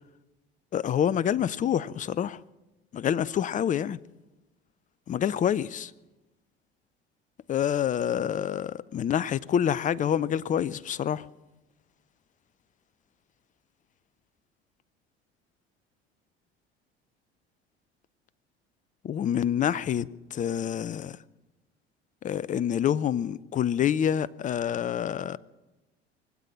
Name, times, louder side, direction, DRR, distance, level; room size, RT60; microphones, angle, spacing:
voice 1, 0.7-2.4 2.9-4.0 5.1-5.9 7.5-11.2 19.0-21.2 22.2-25.4, left 9 dB, 25° left, 0.5 m, -27 dB
24.0 x 8.3 x 7.3 m
figure-of-eight pair, 65°, 32 cm